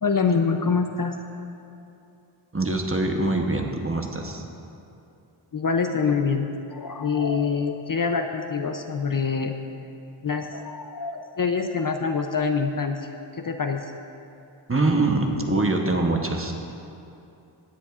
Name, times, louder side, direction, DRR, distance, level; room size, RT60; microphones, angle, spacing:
voice 1, 0.0-1.2 5.5-9.5 10.2-13.1 13.3-13.9, left 5 dB, 45° left, 5 dB, 0.6 m, -25 dB
voice 2, 2.5-4.4 14.7-16.5, right 2 dB, 25° right, 2 dB, 0.9 m, -24 dB
16.0 x 10.0 x 2.5 m, 2.7 s
wide cardioid pair, 80°, 48 cm